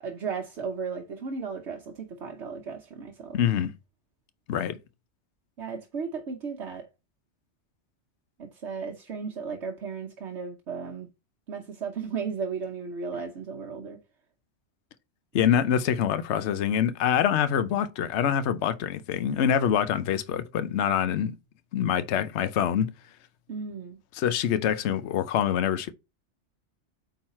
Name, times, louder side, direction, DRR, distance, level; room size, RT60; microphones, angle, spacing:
voice 1, 0.0-3.4 5.6-6.9 8.4-11.1 11.5-14.0 23.5-24.0, right 5 dB, 70° right, 1.2 m, -35 dB
voice 2, 3.3-3.7 4.5-4.8 15.3-21.3 21.7-22.9 24.2-25.9, left 9 dB, 70° left, 1.0 m, -25 dB
8.7 x 4.0 x 4.2 m
omnidirectional pair, 1.2 m